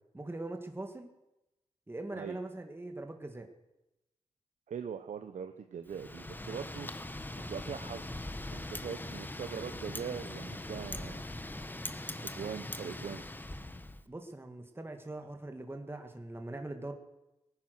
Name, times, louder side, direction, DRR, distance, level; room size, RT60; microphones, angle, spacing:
voice 1, 0.1-1.1 1.9-3.5 14.1-16.9, right 2 dB, 20° right, 5 dB, 1.6 m, -42 dB
voice 2, 4.7-6.9 7.4-8.1 8.5-11.2 12.2-13.2, right 7 dB, 80° right, 7 dB, 0.8 m, -41 dB
Wind, 5.9-14.0, left 1 dB, 15° left, 0.9 m, -41 dB
18.5 x 9.8 x 6.4 m, 0.96 s
cardioid pair, 75°, 13 cm